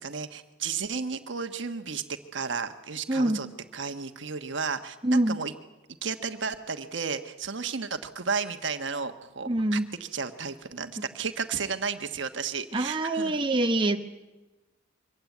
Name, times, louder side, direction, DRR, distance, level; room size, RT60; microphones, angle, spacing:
voice 1, 0.0-3.5 3.7-5.5 6.0-13.4, right 5 dB, 65° right, 8 dB, 1.3 m, -33 dB
voice 2, 3.1-3.4 5.0-5.4 9.5-9.9 12.7-14.0, right 1 dB, 25° right, 4 dB, 1.0 m, -25 dB
24.0 x 16.5 x 9.5 m, 1.1 s
head